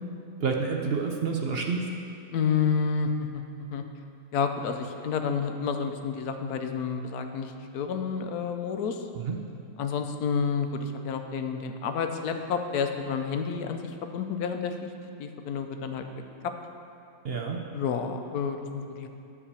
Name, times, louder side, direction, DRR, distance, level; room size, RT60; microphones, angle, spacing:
voice 1, 0.4-1.9 9.2-9.4 17.2-17.6, right 5 dB, 55° right, 2 dB, 0.7 m, -28 dB
voice 2, 2.3-3.8 4.3-9.0 9.8-14.8 15.2-16.1 17.7-19.1, left 6 dB, 80° left, 6 dB, 1.2 m, -30 dB
10.0 x 4.9 x 6.9 m, 2.6 s
omnidirectional pair, 1.6 m